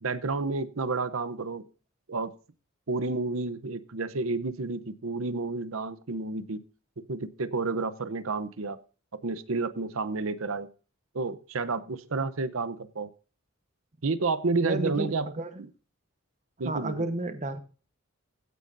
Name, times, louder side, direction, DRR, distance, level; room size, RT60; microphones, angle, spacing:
voice 1, 0.0-1.6 2.1-2.3 2.9-6.6 7.1-8.8 9.2-10.7 11.1-13.1 14.0-15.3 15.6-15.7 16.6-17.1, right 3 dB, 80° right, 14 dB, 0.8 m, -30 dB
voice 2, 14.6-15.6 16.6-17.6, right 1 dB, 35° right, 9 dB, 1.1 m, -32 dB
16.0 x 9.3 x 2.6 m, 0.36 s
head